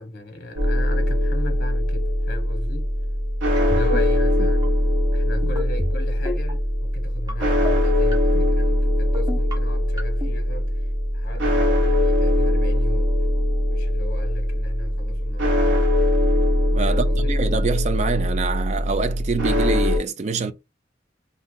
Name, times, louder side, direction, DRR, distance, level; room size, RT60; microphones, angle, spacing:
voice 1, 0.0-2.9 3.7-4.8 5.1-10.8 11.1-13.2 13.7-15.7 16.9-17.4, left 1 dB, 50° left, 0.9 m, -37 dB
sound 1, 0.6-20.0, left 1 dB, 90° right, 0.9 m, -21 dB
sound 2, 3.6-4.0 4.4-4.7 5.4-5.9 6.2-6.5 7.3-7.7 8.1-8.5 9.1-9.5 10.0-10.3, left 1 dB, 20° right, 0.9 m, -30 dB
voice 2, 16.7-20.5, right 4 dB, 35° right, 0.4 m, -25 dB
2.6 x 2.4 x 3.7 m
head